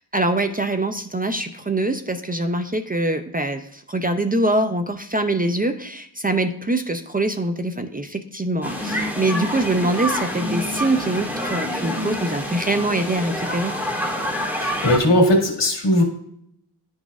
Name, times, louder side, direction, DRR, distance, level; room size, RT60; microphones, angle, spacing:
voice 1, 0.1-13.7, right 2 dB, 20° right, 8 dB, 0.5 m, -24 dB
sound 1, 8.6-15.0, left 1 dB, 5° right, 1.8 m, -27 dB
voice 2, 14.3-16.0, left 1 dB, 75° left, 0 dB, 1.9 m, -19 dB
11.0 x 4.0 x 2.4 m, 0.71 s
cardioid pair, 65°, 43 cm